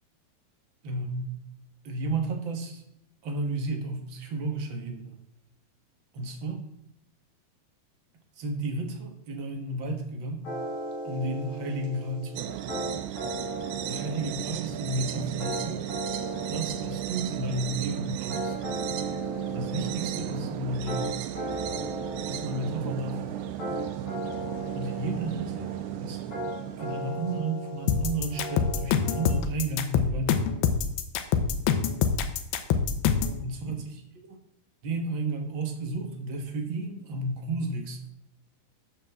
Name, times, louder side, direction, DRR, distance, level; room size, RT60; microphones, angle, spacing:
voice 1, 0.8-1.4 1.8-2.8 3.2-5.2 6.1-6.6 8.4-10.4 11.0-12.7 13.9-15.9 16.5-18.5 19.5-21.2 22.2-23.4 24.7-26.2 26.8-30.6 33.4-34.0 34.8-38.1, right 2 dB, 70° right, 4 dB, 1.1 m, -32 dB
sound 1, 10.4-29.3, equal, 50° left, 5.9 m, -38 dB
sound 2, 12.4-27.4, right 12 dB, 85° right, 2.8 m, -35 dB
sound 3, 27.9-33.4, left 7 dB, 80° left, 2.8 m, -25 dB
13.0 x 8.8 x 3.6 m, 0.78 s
omnidirectional pair, 4.5 m